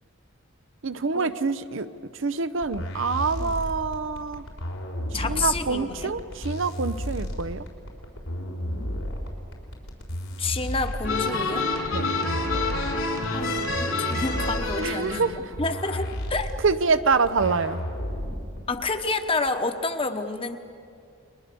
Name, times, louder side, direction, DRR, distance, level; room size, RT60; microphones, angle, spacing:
voice 1, 0.8-1.9 2.1-4.4 5.1-7.7 11.9-12.1 14.8-15.3 16.6-17.8, right 4 dB, 65° right, 11 dB, 0.7 m, -26 dB
sound 1, 2.6-18.6, equal, 90° left, 4.1 m, -32 dB
voice 2, 5.1-6.1 10.4-11.7 13.3-15.3 15.6-16.5 18.7-20.6, left 3 dB, 25° left, 7 dB, 1.1 m, -29 dB
sound 2, 11.0-15.3, left 3 dB, 75° left, 4.0 m, -28 dB
30.0 x 22.0 x 6.9 m, 2.4 s
head